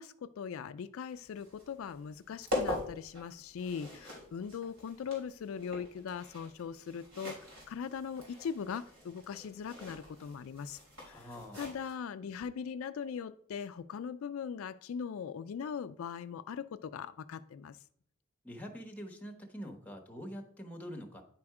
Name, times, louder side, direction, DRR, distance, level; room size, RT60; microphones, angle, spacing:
voice 1, 0.0-10.8 11.1-11.3 11.5-17.8, left 7 dB, 75° left, 11 dB, 0.3 m, -40 dB
sound 1, 1.1-11.9, left 1 dB, 75° right, 3.5 m, -43 dB
voice 2, 11.0-11.7 18.4-21.2, equal, 5° left, 2 dB, 1.0 m, -45 dB
9.7 x 4.3 x 4.8 m, 0.63 s
head